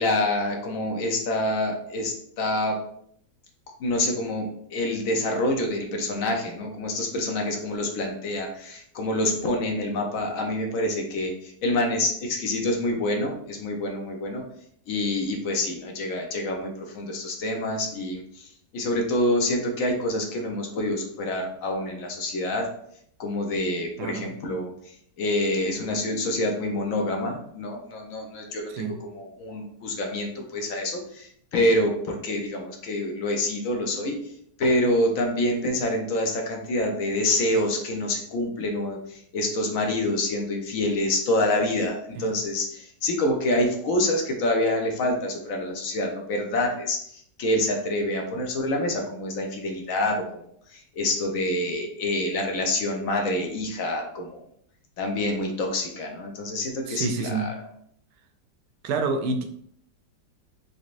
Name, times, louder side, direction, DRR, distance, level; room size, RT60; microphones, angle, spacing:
voice 1, 0.0-2.8 3.8-14.4 14.9-18.5 18.7-22.7 23.2-28.8 29.1-34.2 34.6-50.2 50.7-54.4 55.0-57.5, left 1 dB, 60° left, 2 dB, 1.0 m, -27 dB
voice 2, 56.9-57.5 58.8-59.4, right 4 dB, 75° right, 6 dB, 1.1 m, -28 dB
4.0 x 3.3 x 2.5 m, 0.67 s
omnidirectional pair, 1.8 m